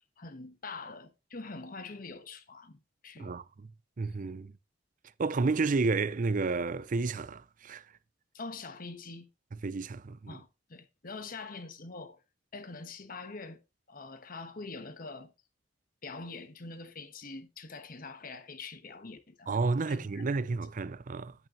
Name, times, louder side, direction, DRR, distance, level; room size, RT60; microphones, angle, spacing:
voice 1, 0.2-3.4 8.3-9.3 10.3-12.2 12.5-13.6 13.9-15.3 16.0-19.6 19.9-20.6, left 3 dB, 50° left, 1.2 m, -44 dB
voice 2, 4.0-4.5 5.2-7.8 9.6-10.4 19.5-21.3, right 3 dB, 45° right, 0.5 m, -31 dB
9.0 x 8.9 x 3.0 m
head